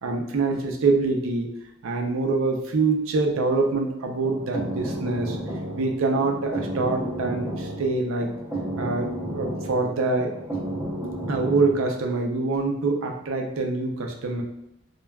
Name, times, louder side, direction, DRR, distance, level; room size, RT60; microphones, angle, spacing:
voice 1, 0.0-1.5 1.8-5.4 5.8-8.3 8.8-10.3 11.3-14.4, right 3 dB, 75° right, 2 dB, 0.5 m, -25 dB
sound 1, 4.1-11.9, right 1 dB, 5° right, 0.6 m, -32 dB
3.3 x 2.3 x 2.2 m, 0.80 s
head